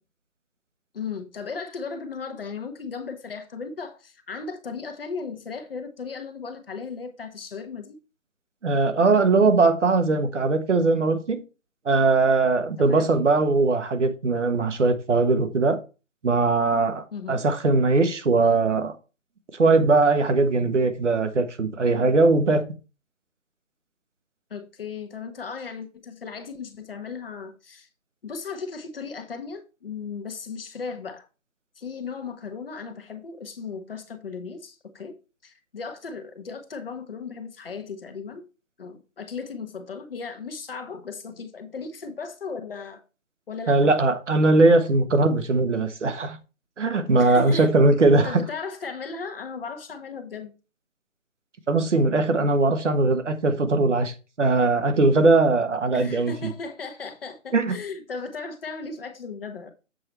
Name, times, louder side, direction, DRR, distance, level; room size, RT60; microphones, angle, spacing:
voice 1, 0.9-8.0 12.8-13.1 17.1-17.4 24.5-27.9 28.2-31.3 31.8-35.2 35.4-38.5 38.8-43.0 43.5-43.9 47.1-47.7 48.2-50.5 55.9-59.7, left 5 dB, 45° left, 1.1 m, -36 dB
voice 2, 8.6-11.4 11.8-15.8 16.2-18.9 19.5-22.6 43.7-46.4 46.8-48.4 51.7-56.5 57.5-57.8, right 3 dB, 60° right, 1.3 m, -20 dB
7.7 x 4.6 x 4.4 m
figure-of-eight pair, 155°, 41 cm